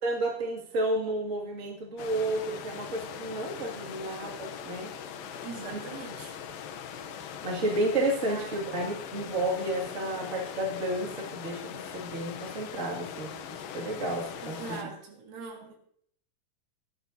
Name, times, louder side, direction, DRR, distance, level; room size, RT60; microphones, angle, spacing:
voice 1, 0.0-4.9 5.7-5.8 7.4-13.4 13.7-14.9, right 1 dB, 25° right, -2 dB, 2.0 m, -31 dB
sound 1, 2.0-14.8, left 8 dB, 80° left, 2.6 m, -41 dB
voice 2, 5.2-6.3 8.3-8.5 14.4-15.8, right 5 dB, 85° right, 1 dB, 3.8 m, -42 dB
18.0 x 11.5 x 2.7 m, 0.66 s
omnidirectional pair, 4.0 m